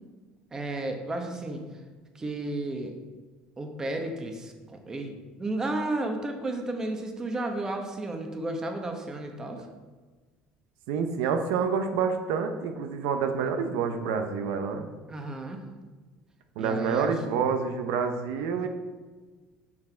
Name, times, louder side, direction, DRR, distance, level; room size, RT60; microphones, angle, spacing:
voice 1, 0.5-1.6 2.1-2.9 3.6-9.6 15.1-15.6 16.6-17.1, right 2 dB, 20° right, 4 dB, 1.0 m, -33 dB
voice 2, 10.9-14.9 16.6-18.7, right 6 dB, 90° right, 6 dB, 0.7 m, -28 dB
6.4 x 6.0 x 4.5 m, 1.3 s
cardioid pair, 130°, 3 cm